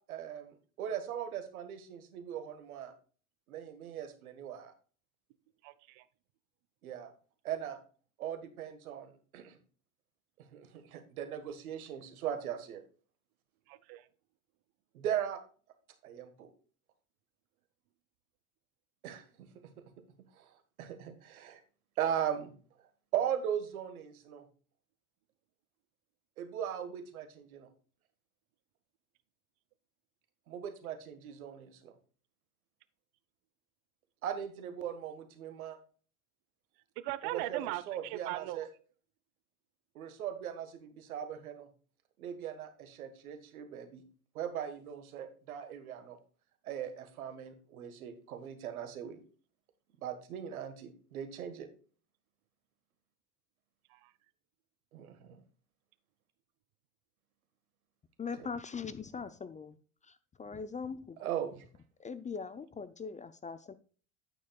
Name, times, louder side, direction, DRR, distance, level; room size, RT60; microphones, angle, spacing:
voice 1, 0.1-2.9 3.5-4.7 6.8-7.1 7.4-7.8 8.2-9.6 10.5-12.8 14.9-15.4 16.0-16.5 19.0-19.2 20.4-20.5 20.8-21.6 22.0-22.5 23.1-24.4 26.4-27.7 30.5-31.9 34.2-35.8 37.3-38.7 40.0-41.7 42.2-44.0 44.4-46.2 46.7-49.2 50.0-51.7 54.9-55.4 58.4-58.5 61.2-61.7, right 9 dB, 80° right, 9 dB, 1.6 m, -39 dB
voice 2, 5.6-6.0 13.7-14.1 37.0-38.6 53.9-54.1, right 16 dB, 60° right, 17 dB, 0.9 m, -39 dB
voice 3, 58.2-59.8 60.4-61.2 62.0-63.7, left 5 dB, 15° left, 14 dB, 0.5 m, -41 dB
9.3 x 8.7 x 2.3 m, 0.40 s
hypercardioid pair, 80°, 43 cm